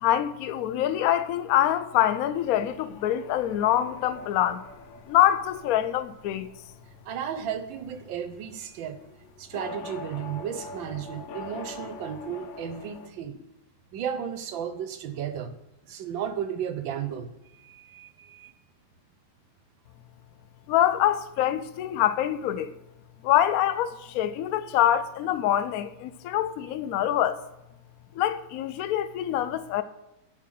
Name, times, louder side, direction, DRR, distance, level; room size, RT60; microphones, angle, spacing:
voice 1, 0.0-4.6 5.1-6.5 20.7-22.7 23.2-27.4 28.2-29.8, left 12 dB, 70° left, 0.8 m, -25 dB
sound 1, 2.3-13.1, left 3 dB, 90° left, 1.5 m, -44 dB
voice 2, 7.0-9.0 9.4-13.4 13.9-15.5 15.9-18.5, right 8 dB, 85° right, 1.6 m, -34 dB
7.5 x 5.6 x 7.6 m
omnidirectional pair, 2.0 m